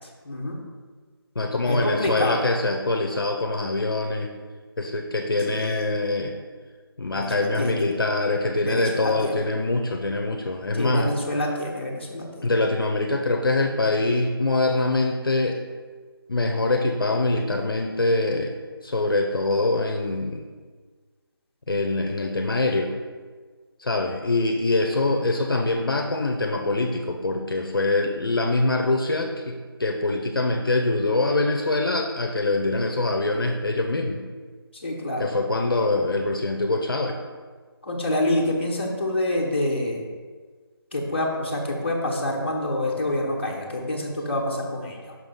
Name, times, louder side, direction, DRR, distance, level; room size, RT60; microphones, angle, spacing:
voice 1, 0.2-0.6 1.7-2.4 5.5-5.9 7.1-7.9 8.6-9.3 10.7-12.5 34.8-35.3 37.8-40.1 40.9-45.1, left 1 dB, 25° left, -1 dB, 0.9 m, -27 dB
voice 2, 1.4-4.3 4.8-6.3 7.0-11.1 12.4-15.6 16.3-18.5 18.8-20.4 21.7-22.9 23.8-34.2 35.2-37.2, left 2 dB, 60° left, 2 dB, 0.6 m, -24 dB
5.8 x 3.8 x 5.4 m, 1.5 s
figure-of-eight pair, 180°, 13 cm